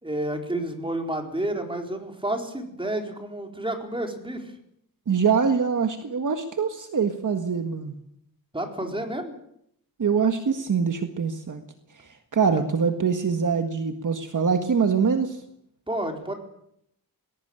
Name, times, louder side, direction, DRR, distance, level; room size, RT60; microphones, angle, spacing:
voice 1, 0.0-4.5 8.5-9.3 15.9-16.3, right 1 dB, 15° right, 3 dB, 4.3 m, -30 dB
voice 2, 5.1-7.9 10.0-11.6 11.9-15.4, right 6 dB, 55° right, 7 dB, 1.7 m, -24 dB
21.0 x 18.0 x 8.9 m, 0.74 s
wide cardioid pair, 125°, 37 cm